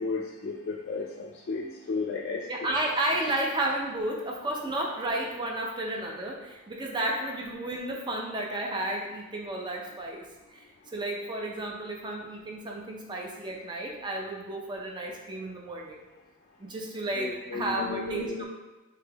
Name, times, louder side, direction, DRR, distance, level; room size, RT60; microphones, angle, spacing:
voice 1, 0.0-2.5 17.2-18.5, left 4 dB, 50° left, -2 dB, 0.3 m, -33 dB
voice 2, 2.5-10.2 10.5-10.6 10.9-16.0 16.6-18.5, right 1 dB, 20° right, 0 dB, 0.5 m, -32 dB
3.6 x 2.8 x 3.4 m, 1.2 s
head